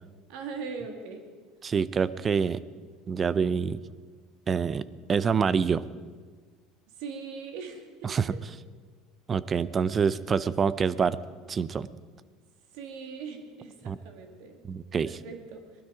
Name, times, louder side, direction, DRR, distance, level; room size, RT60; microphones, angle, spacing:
voice 1, 0.3-1.2 7.0-8.4 12.7-14.6 15.0-15.8, right 5 dB, 75° right, 5 dB, 2.2 m, -40 dB
voice 2, 1.6-2.6 3.1-3.8 4.5-5.8 8.0-8.3 9.3-11.2 11.5-11.9 13.9-14.0 14.7-15.1, right 6 dB, 30° right, 18 dB, 0.5 m, -26 dB
19.5 x 12.5 x 5.0 m, 1.5 s
supercardioid pair, 110°, 0 cm